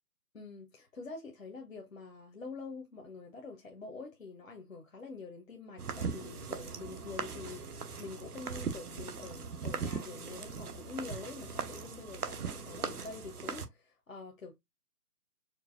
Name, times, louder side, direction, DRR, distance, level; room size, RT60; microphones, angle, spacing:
voice 1, 0.3-14.6, left 4 dB, 55° left, 0.8 m, -46 dB
sound 1, 5.8-13.7, right 5 dB, 70° right, 0.8 m, -39 dB
4.6 x 2.4 x 2.5 m
figure-of-eight pair, 175°, 47 cm